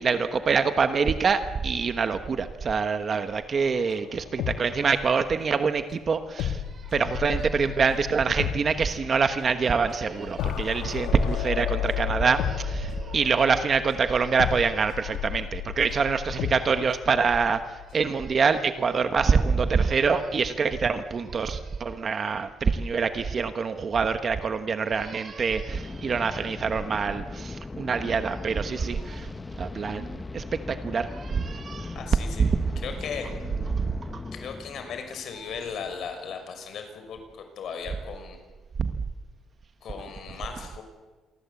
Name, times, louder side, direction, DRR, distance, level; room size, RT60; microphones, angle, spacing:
voice 1, 0.0-6.6 6.9-29.3 29.6-31.9 32.4-32.6 33.7-34.2 38.8-38.9, right 5 dB, 30° right, 9 dB, 1.2 m, -25 dB
sound 1, 3.6-5.4 5.6-5.7 6.4-18.8 19.2-19.3, left 10 dB, 85° left, 2.2 m, -34 dB
sound 2, 25.7-36.4, left 3 dB, 15° left, 0.9 m, -39 dB
voice 2, 31.9-32.5 32.8-33.3 34.3-38.4 39.8-40.8, left 6 dB, 50° left, 6 dB, 5.9 m, -37 dB
28.0 x 23.5 x 8.4 m, 1.3 s
cardioid pair, 165°, 0 cm